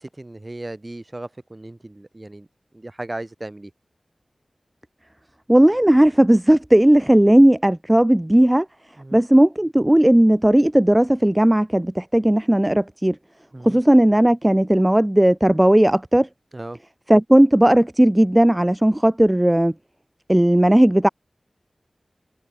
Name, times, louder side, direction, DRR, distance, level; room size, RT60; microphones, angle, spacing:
voice 1, 0.0-2.5 2.7-3.7 9.0-9.2 13.5-13.8 16.5-16.8, right 2 dB, 30° right, 4.6 m, -36 dB
voice 2, 5.5-8.7 9.1-13.2 13.6-16.3 17.1-19.7 20.3-21.1, right 1 dB, 15° right, 0.3 m, -16 dB
cardioid pair, 45°, 0 cm